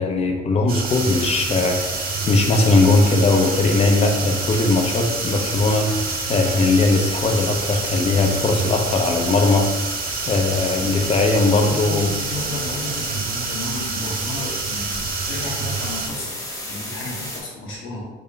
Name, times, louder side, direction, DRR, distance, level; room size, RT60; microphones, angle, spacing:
voice 1, 0.0-9.8 10.3-12.1, left 3 dB, 30° left, 2 dB, 0.5 m, -19 dB
sound 1, 0.7-16.1, right 5 dB, 50° right, 0.5 m, -28 dB
sound 2, 0.8-17.4, left 1 dB, 15° left, 0.9 m, -33 dB
voice 2, 11.7-18.0, left 2 dB, 85° left, -3 dB, 1.1 m, -33 dB
3.6 x 2.5 x 3.2 m, 1.2 s
cardioid pair, 145°, 20 cm